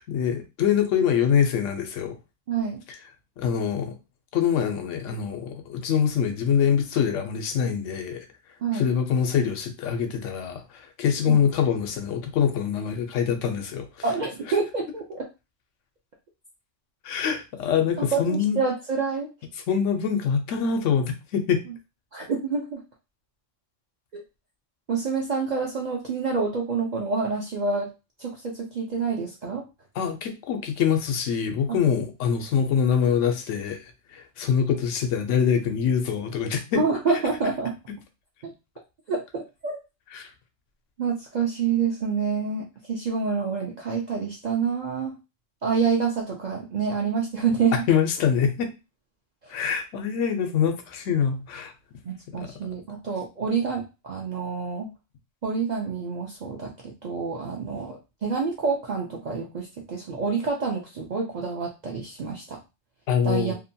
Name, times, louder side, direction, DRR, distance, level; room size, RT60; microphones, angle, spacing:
voice 1, 0.0-2.2 3.4-4.0 4.3-8.3 8.7-13.9 17.0-18.6 19.7-21.6 30.0-36.8 40.1-40.3 47.7-48.7 49.5-51.7 52.3-52.5 63.1-63.5, left 7 dB, 85° left, 0.9 m, -24 dB
voice 2, 2.5-2.8 8.6-8.9 11.3-11.4 14.0-15.3 18.0-19.3 22.1-22.8 24.1-24.2 24.9-27.9 28.2-29.6 36.7-37.8 38.4-38.5 39.1-39.8 41.0-45.1 45.6-47.8 49.4-49.5 52.0-54.9 55.4-62.6 63.2-63.5, right 5 dB, 60° right, 0.4 m, -27 dB
2.7 x 2.1 x 2.6 m
omnidirectional pair, 1.2 m